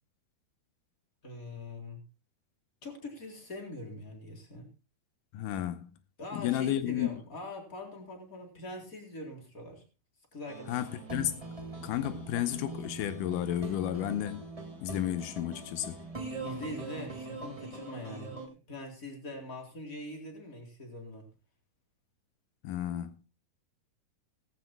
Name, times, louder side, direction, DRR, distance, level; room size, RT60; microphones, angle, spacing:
voice 1, 1.2-2.0 2.8-4.7 6.2-9.8 10.3-10.8 16.4-21.3, left 1 dB, 20° left, 3.9 m, -43 dB
voice 2, 5.3-5.9 6.3-7.2 10.7-11.4 11.8-14.5 14.8-16.0 22.6-23.3, left 12 dB, 85° left, 1.8 m, -32 dB
sound 1, 10.5-18.5, right 2 dB, 10° right, 2.1 m, -42 dB
18.5 x 15.5 x 2.2 m
omnidirectional pair, 4.8 m